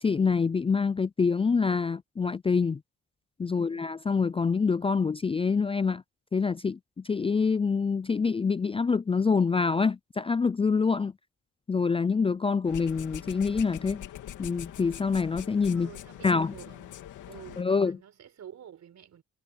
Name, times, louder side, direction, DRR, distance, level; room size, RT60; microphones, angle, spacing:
voice 1, 0.0-2.8 3.4-6.0 6.3-6.8 7.0-11.1 11.7-14.0 14.4-15.9 16.2-16.5 17.6-18.0, left 5 dB, 20° left, 0.4 m, -26 dB
voice 2, 3.4-4.0 15.7-17.0 17.2-19.2, right 9 dB, 60° right, 5.1 m, -49 dB
sound 1, 12.6-17.6, left 12 dB, 80° left, 3.0 m, -43 dB
cardioid pair, 90°, 30 cm